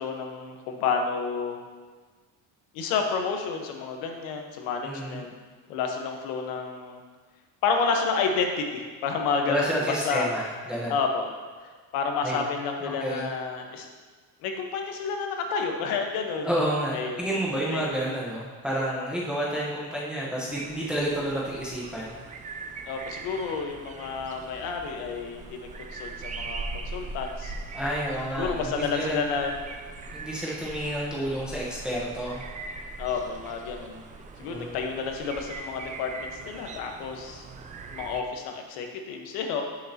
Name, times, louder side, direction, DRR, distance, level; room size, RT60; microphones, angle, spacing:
voice 1, 0.0-1.6 2.7-5.3 5.7-7.0 7.6-9.7 10.0-10.3 10.9-11.3 11.9-13.9 14.4-16.5 16.9-17.2 17.7-17.9 22.9-27.5 28.4-29.5 33.0-34.0 34.4-37.4 37.9-39.6, left 5 dB, 85° left, 3 dB, 1.3 m, -30 dB
voice 2, 4.8-5.2 9.5-10.9 12.2-12.4 12.8-13.3 16.4-22.2 27.7-29.2 30.1-32.4 34.5-34.8, right 1 dB, 5° right, -6 dB, 1.1 m, -30 dB
sound 1, 20.5-38.2, right 3 dB, 20° right, 0.4 m, -40 dB
12.0 x 6.6 x 2.9 m, 1.4 s
cardioid pair, 150°, 35 cm